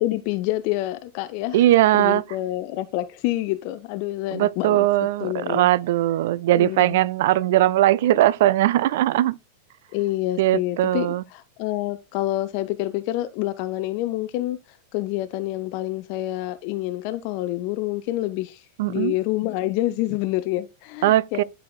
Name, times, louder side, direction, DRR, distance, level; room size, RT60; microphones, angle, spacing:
voice 1, 0.0-1.6 2.0-4.9 5.2-5.7 6.5-7.0 9.9-11.1 11.3-21.4, left 16 dB, 45° left, 0.5 m, -27 dB
voice 2, 1.5-2.2 4.3-9.4 10.4-11.2 18.8-19.1 21.0-21.4, right 14 dB, 55° right, 0.4 m, -19 dB
12.0 x 4.8 x 2.3 m
figure-of-eight pair, 90°, 0 cm